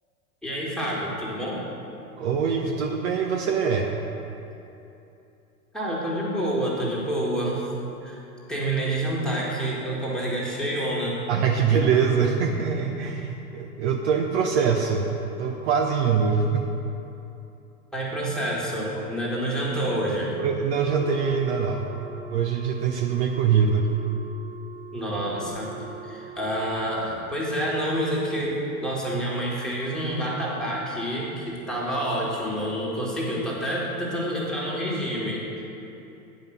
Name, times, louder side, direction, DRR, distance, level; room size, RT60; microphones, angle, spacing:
voice 1, 0.4-1.6 5.7-7.6 8.0-8.2 8.5-11.2 17.9-20.3 24.9-35.6, right 1 dB, ahead, -6 dB, 1.9 m, -28 dB
voice 2, 2.2-3.9 11.3-15.1 15.4-16.7 20.4-22.0 22.3-23.9, right 6 dB, 45° right, 2 dB, 0.8 m, -23 dB
Wind instrument woodwind instrument, 20.9-27.0, right 6 dB, 20° right, 0.4 m, -43 dB
9.5 x 5.2 x 6.8 m, 2.8 s
figure-of-eight pair, 95°, 45 cm